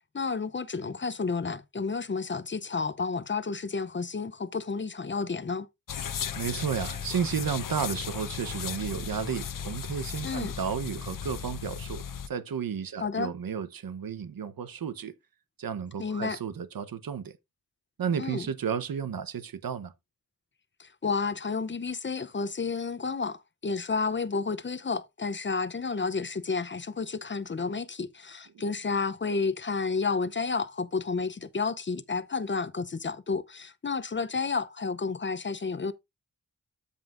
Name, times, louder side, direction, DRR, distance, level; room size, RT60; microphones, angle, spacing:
voice 1, 0.1-5.7 10.2-10.5 13.0-13.3 16.0-16.4 18.2-18.5 20.8-35.9, left 4 dB, 35° left, 0.6 m, -31 dB
sound 1, 5.9-12.3, left 8 dB, 65° left, 0.8 m, -36 dB
voice 2, 6.4-15.1 15.6-17.3 18.0-19.9 28.5-28.6, right 7 dB, 75° right, 1.0 m, -33 dB
13.0 x 5.4 x 2.5 m
wide cardioid pair, 135°, 35 cm